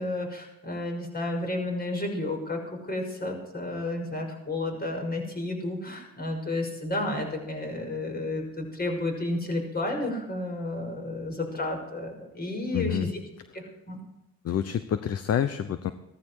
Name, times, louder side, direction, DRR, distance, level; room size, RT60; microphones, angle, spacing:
voice 1, 0.0-2.6 2.9-13.1 13.5-14.0, left 2 dB, 30° left, 2 dB, 5.9 m, -31 dB
voice 2, 12.7-13.1 14.4-15.9, left 9 dB, 55° left, 11 dB, 0.9 m, -27 dB
16.0 x 14.0 x 4.8 m, 0.91 s
cardioid pair, 90°, 30 cm